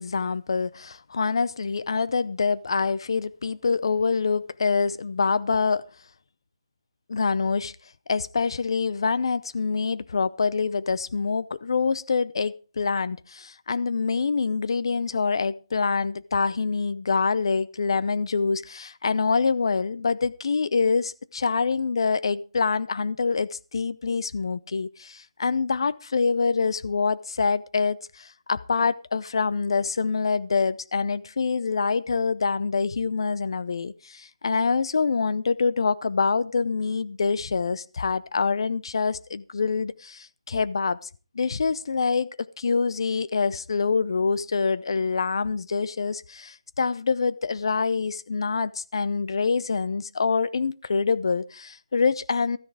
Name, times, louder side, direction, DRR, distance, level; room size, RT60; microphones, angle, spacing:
voice 1, 0.0-5.8 7.1-7.7 8.1-41.0 41.3-52.6, left 5 dB, 60° left, 0.7 m, -25 dB
13.5 x 10.0 x 4.8 m
figure-of-eight pair, 160°, 3 cm